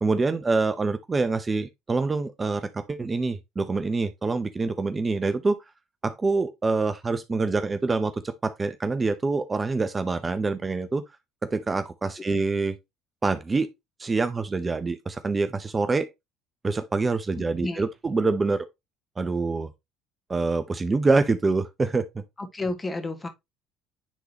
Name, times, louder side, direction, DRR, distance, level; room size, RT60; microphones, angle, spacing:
voice 1, 0.0-5.6 6.0-11.0 11.4-12.7 13.2-13.7 14.0-16.1 16.6-18.7 19.2-19.7 20.3-22.2, right 3 dB, 25° right, 0.7 m, -26 dB
voice 2, 22.4-23.3, left 2 dB, 20° left, 1.7 m, -31 dB
10.0 x 3.8 x 2.8 m
hypercardioid pair, 60°, 0 cm